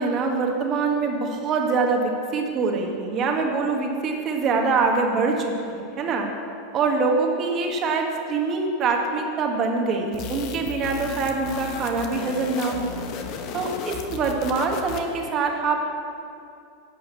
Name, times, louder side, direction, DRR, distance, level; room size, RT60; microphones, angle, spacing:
voice 1, 0.0-6.3 6.7-12.9 13.5-15.9, right 4 dB, 35° right, 2 dB, 1.8 m, -24 dB
sound 1, 10.1-15.2, left 5 dB, 50° left, 1.2 m, -35 dB
10.5 x 6.4 x 8.3 m, 2.5 s
hypercardioid pair, 115°, 0 cm